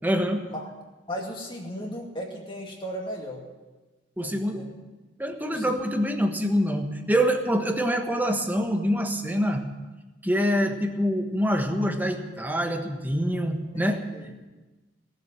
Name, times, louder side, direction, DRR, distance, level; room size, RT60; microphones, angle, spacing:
voice 1, 0.0-0.5 4.2-4.7 5.2-9.6 10.2-14.0, equal, 10° right, 5 dB, 1.3 m, -25 dB
voice 2, 1.1-3.4 4.2-4.7 5.5-5.8 10.6-10.7 13.7-14.3, equal, 25° left, -1 dB, 2.2 m, -36 dB
17.5 x 7.8 x 8.9 m, 1.2 s
head